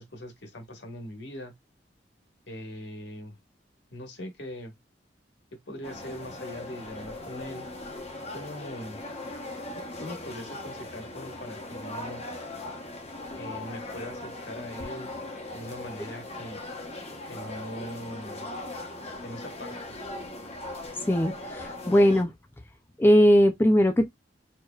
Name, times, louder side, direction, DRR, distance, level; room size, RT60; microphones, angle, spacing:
voice 1, 0.0-1.5 2.5-3.4 3.9-4.7 5.7-7.7 8.3-9.0 9.7-12.2 13.4-15.1 15.5-16.6 17.3-18.5 19.2-19.9, left 1 dB, 70° left, 1.4 m, -41 dB
sound 1, 5.8-22.2, left 2 dB, 35° left, 0.9 m, -39 dB
voice 2, 21.1-22.3 23.0-24.1, equal, 10° left, 0.3 m, -20 dB
4.6 x 2.8 x 2.3 m
head